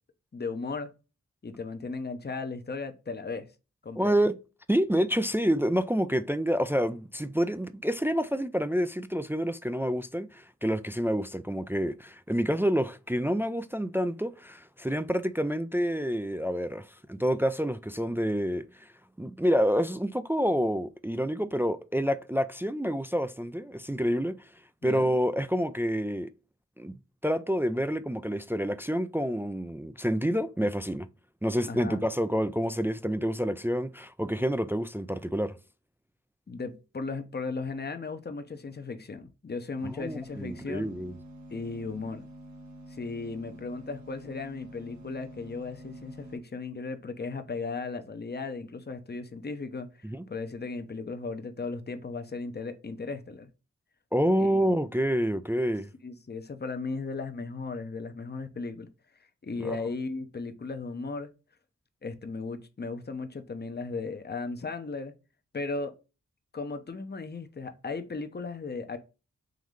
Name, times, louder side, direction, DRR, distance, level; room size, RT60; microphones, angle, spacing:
voice 1, 0.3-0.9 1.4-3.5 3.8-4.1 24.8-25.1 31.7-32.0 36.5-40.9 41.5-42.2 42.9-53.5 54.4-54.6 56.0-58.9 59.4-61.3 62.0-65.1 65.5-65.9 66.5-69.0, left 4 dB, 35° left, 0.7 m, -36 dB
voice 2, 4.0-4.4 4.7-18.9 19.2-24.3 24.8-26.3 26.8-26.9 27.2-31.1 31.4-35.6 39.8-41.1 50.0-50.3 54.1-55.9 59.6-59.8, equal, 10° right, 0.3 m, -28 dB
sound 1, 39.8-46.4, equal, 65° right, 1.1 m, -47 dB
3.8 x 3.0 x 3.1 m
cardioid pair, 40°, 30 cm